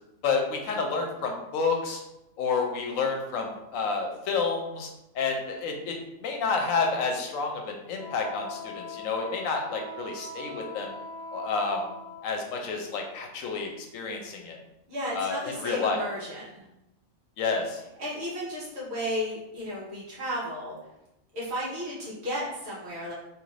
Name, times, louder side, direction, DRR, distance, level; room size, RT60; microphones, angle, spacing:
voice 1, 0.2-2.0 2.4-4.9 5.1-5.9 6.2-11.0 11.3-11.9 12.2-14.6 15.1-16.0 17.4-17.8, left 4 dB, 75° left, 2 dB, 1.0 m, -29 dB
Wind instrument woodwind instrument, 8.0-12.4, left 2 dB, 90° right, 1.4 m, -41 dB
voice 2, 14.9-16.6 18.0-20.7 21.3-23.1, equal, 55° right, -7 dB, 1.3 m, -33 dB
2.9 x 2.5 x 3.1 m, 0.91 s
omnidirectional pair, 1.4 m